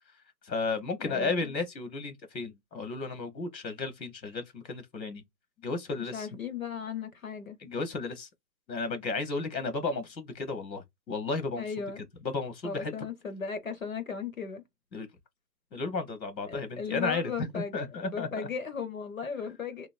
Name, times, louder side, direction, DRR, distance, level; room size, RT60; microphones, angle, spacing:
voice 1, 0.4-5.2 5.6-6.3 7.6-8.3 8.7-11.6 12.2-12.9 14.9-15.1 15.7-18.5, left 3 dB, 85° left, 1.1 m, -33 dB
voice 2, 1.0-1.5 6.0-7.6 11.6-12.0 12.6-14.6 16.5-17.7 18.1-19.9, left 6 dB, 55° left, 0.6 m, -36 dB
2.9 x 2.1 x 2.5 m
hypercardioid pair, 170°, 50 cm